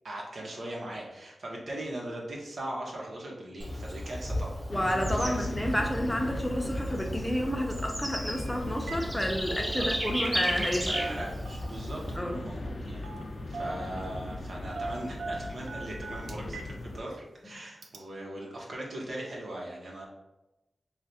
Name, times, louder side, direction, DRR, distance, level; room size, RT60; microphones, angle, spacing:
voice 1, 0.0-4.6 5.1-5.5 9.5-9.9 10.8-13.0 13.5-17.2 17.4-20.0, right 1 dB, 75° right, -2 dB, 1.0 m, -39 dB
Bird / Insect, 3.6-12.2, equal, 25° right, 0.7 m, -35 dB
sound 1, 4.7-17.0, left 1 dB, 65° left, 0.5 m, -39 dB
voice 2, 4.7-11.2 12.2-12.4, equal, 10° left, 2 dB, 0.7 m, -30 dB
Telephone, 8.3-8.4 8.7-9.1 9.3-10.6 10.9-11.9 13.0-13.3 13.5-14.2 14.7-16.7 17.1-17.2 17.8-18.0, right 3 dB, 90° right, 0.4 m, -40 dB
3.3 x 2.5 x 4.1 m, 0.96 s
cardioid pair, 65°, 0 cm